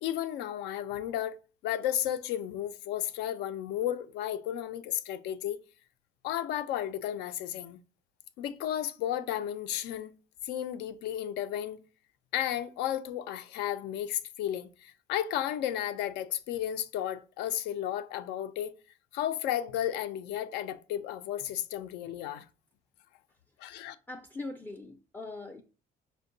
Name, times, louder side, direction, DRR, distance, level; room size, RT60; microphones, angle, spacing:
voice 1, 0.0-1.4 1.6-5.6 6.2-7.8 8.4-10.2 10.4-11.8 12.3-18.7 19.1-22.5 23.6-24.0, left 11 dB, 85° left, 0.4 m, -33 dB
voice 2, 24.1-25.6, left 2 dB, 10° left, 0.4 m, -41 dB
4.4 x 2.2 x 3.8 m
cardioid pair, 110°, 17 cm